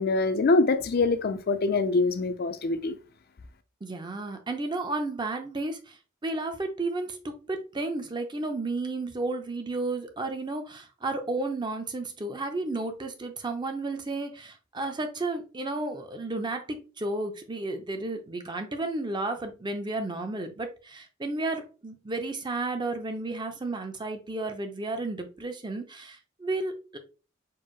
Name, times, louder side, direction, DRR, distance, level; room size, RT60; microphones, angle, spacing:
voice 1, 0.0-3.0, left 3 dB, 50° left, 0.5 m, -24 dB
voice 2, 3.8-6.0 6.2-27.0, right 2 dB, 25° right, 0.6 m, -32 dB
4.6 x 2.0 x 4.6 m
head